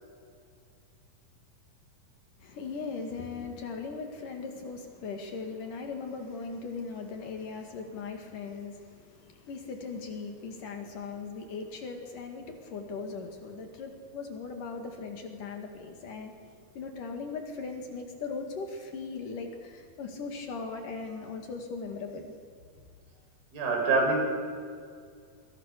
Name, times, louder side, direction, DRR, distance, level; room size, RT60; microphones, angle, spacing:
voice 1, 2.4-22.3, left 4 dB, 60° left, 4 dB, 3.7 m, -39 dB
voice 2, 23.5-24.2, right 3 dB, 65° right, 2 dB, 6.9 m, -25 dB
28.0 x 25.5 x 6.8 m, 2.2 s
omnidirectional pair, 4.5 m